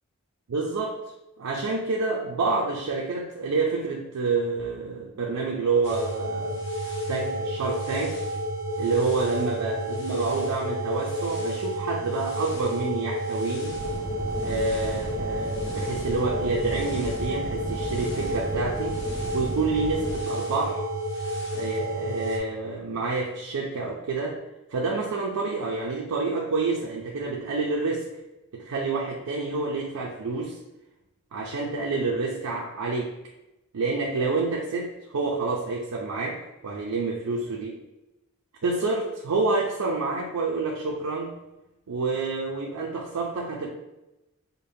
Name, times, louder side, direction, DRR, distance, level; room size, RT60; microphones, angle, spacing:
voice 1, 0.5-1.0 1.4-6.6 7.1-8.2 8.8-13.8 14.4-19.0 19.3-20.8 21.5-24.4 24.7-28.1 28.5-30.6 31.3-33.1 33.7-37.7 38.6-41.3 41.9-43.7, right 3 dB, 90° right, -2 dB, 0.5 m, -28 dB
sound 1, 5.8-22.4, right 1 dB, 55° left, 0.7 m, -31 dB
sound 2, 13.6-20.2, equal, 5° left, 0.3 m, -36 dB
5.2 x 2.2 x 2.6 m, 0.96 s
head